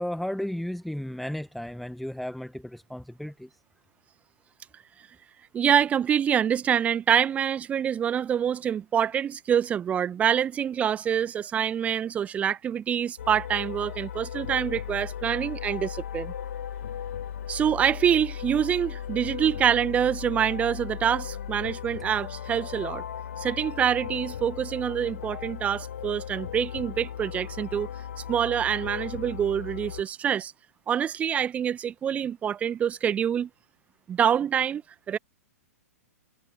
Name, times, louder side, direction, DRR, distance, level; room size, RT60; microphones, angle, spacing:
voice 1, 0.0-3.6, left 1 dB, ahead, 1.6 m, -34 dB
voice 2, 5.5-16.3 17.5-23.0 23.4-27.9 28.3-30.5 30.9-33.5 34.1-34.8 35.1-35.2, right 8 dB, 15° right, 1.5 m, -26 dB
sound 1, 13.2-30.0, left 9 dB, 55° left, 1.8 m, -37 dB
figure-of-eight pair, 110°, 8 cm